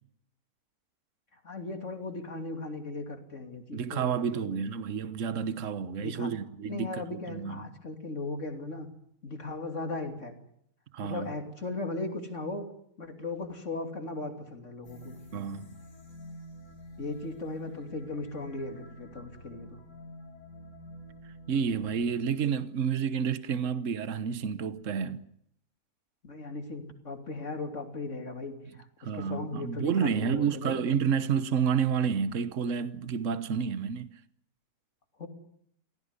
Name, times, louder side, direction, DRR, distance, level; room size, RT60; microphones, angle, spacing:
voice 1, 1.4-4.6 6.0-6.3 6.6-8.9 9.2-10.3 11.0-12.6 13.0-15.2 17.0-19.8 26.2-30.8 35.2-35.3, left 2 dB, 50° left, 3.3 m, -37 dB
voice 2, 3.7-7.7 10.9-11.3 15.3-15.7 21.5-25.2 29.0-34.1, right 7 dB, 55° right, 1.4 m, -30 dB
sound 1, 14.8-22.4, left 1 dB, 65° left, 4.4 m, -48 dB
25.5 x 17.0 x 9.8 m
omnidirectional pair, 1.6 m